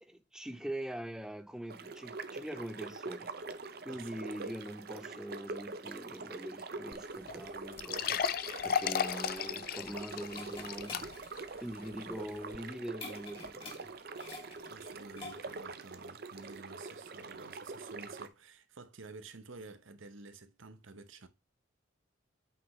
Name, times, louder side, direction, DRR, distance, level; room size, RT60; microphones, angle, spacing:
voice 1, 0.0-3.3 3.8-8.2 8.6-11.1 11.6-13.9, equal, 5° right, 0.6 m, -43 dB
sound 1, 1.7-18.3, right 3 dB, 50° right, 0.7 m, -44 dB
voice 2, 3.9-4.5 14.7-21.3, right 3 dB, 90° right, 0.9 m, -51 dB
sound 2, 6.9-7.0 7.3-7.4 7.8-11.4 11.8-11.9 12.5-12.6, left 7 dB, 50° left, 0.4 m, -34 dB
sound 3, 9.5-15.7, left 3 dB, 30° left, 2.9 m, -50 dB
8.5 x 5.6 x 3.2 m
head